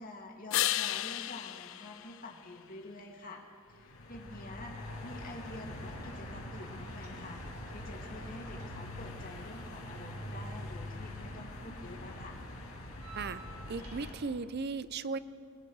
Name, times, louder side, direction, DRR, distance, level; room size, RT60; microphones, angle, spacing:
voice 1, 0.0-3.4 3.7-4.7 5.0-12.4, left 2 dB, 40° left, 1 dB, 2.1 m, -48 dB
sound 1, 0.5-3.1 8.8-12.8, left 13 dB, 65° left, 0.5 m, -38 dB
sound 2, 3.7-14.1, left 1 dB, 85° left, 6.3 m, -44 dB
sound 3, 6.9-7.7 7.9-11.3 11.6-14.4, right 5 dB, 85° right, 3.7 m, -56 dB
voice 2, 13.7-15.2, right 4 dB, 50° right, 14 dB, 0.5 m, -36 dB
29.0 x 20.5 x 4.7 m, 2.4 s
head